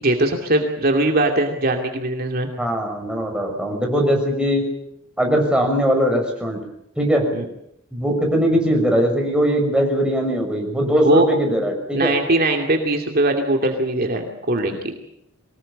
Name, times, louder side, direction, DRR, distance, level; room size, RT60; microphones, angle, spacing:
voice 1, 0.0-2.5 7.3-7.5 11.0-11.3 11.9-14.8, right 2 dB, 45° right, 3 dB, 2.5 m, -20 dB
voice 2, 2.6-4.7 5.2-6.6 7.0-7.3 7.9-12.1, equal, 5° right, 1 dB, 6.3 m, -20 dB
23.5 x 19.5 x 8.8 m, 0.77 s
head